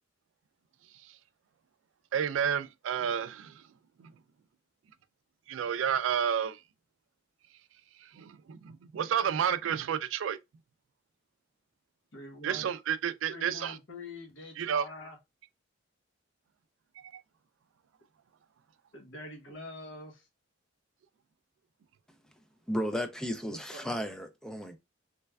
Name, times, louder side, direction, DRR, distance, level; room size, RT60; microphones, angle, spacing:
voice 1, 2.1-3.5 4.0-4.1 5.5-6.6 8.2-10.4 12.4-13.7 14.6-14.8 17.1-17.2, right 8 dB, 85° right, 0.3 m, -30 dB
voice 2, 12.1-12.7 13.3-15.2 18.9-20.3 23.4-23.9, left 2 dB, 75° left, 1.0 m, -45 dB
voice 3, 22.7-24.8, equal, 5° left, 0.3 m, -34 dB
3.2 x 3.2 x 2.2 m
head